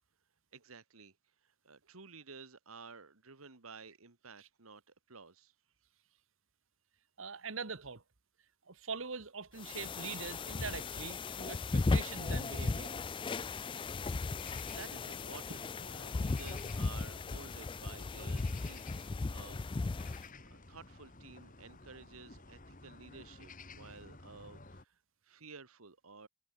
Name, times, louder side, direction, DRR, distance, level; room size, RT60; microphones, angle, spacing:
voice 1, 0.5-1.1 1.4-4.8 5.1-5.5 14.6-19.6 20.5-25.0 25.2-26.3, right 4 dB, 85° right, 1.9 m, -53 dB
voice 2, 7.2-8.0 8.7-13.0, right 5 dB, 65° right, 1.4 m, -43 dB
sound 1, 9.6-20.3, left 3 dB, 25° left, 0.3 m, -36 dB
sound 2, 13.8-24.8, left 3 dB, 40° left, 2.6 m, -54 dB
head